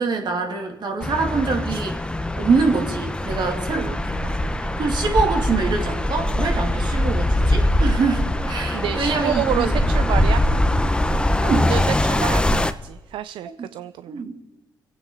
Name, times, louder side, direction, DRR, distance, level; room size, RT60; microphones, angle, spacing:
voice 1, 0.0-2.0 2.4-4.3 4.8-9.7 11.4-11.7 13.4-13.5 14.1-14.3, right 4 dB, 60° right, 2 dB, 2.5 m, -24 dB
sound 1, 1.0-12.7, left 1 dB, 10° left, 0.8 m, -22 dB
voice 2, 8.7-10.4 11.5-14.2, right 11 dB, 80° right, 14 dB, 0.3 m, -28 dB
26.0 x 9.0 x 3.9 m, 1.1 s
cardioid pair, 65°, 9 cm